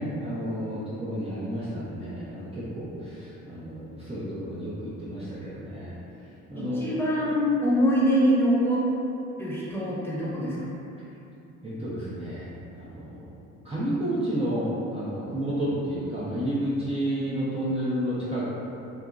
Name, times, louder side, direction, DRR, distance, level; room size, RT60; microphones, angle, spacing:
voice 1, 0.0-6.0 6.5-6.9 11.6-12.5 12.7-13.3 13.6-18.5, right 1 dB, 15° right, -11 dB, 0.6 m, -31 dB
voice 2, 6.6-8.8 9.4-10.6, equal, 5° left, -9 dB, 0.9 m, -24 dB
2.7 x 2.4 x 2.3 m, 2.8 s
hypercardioid pair, 55°, 38 cm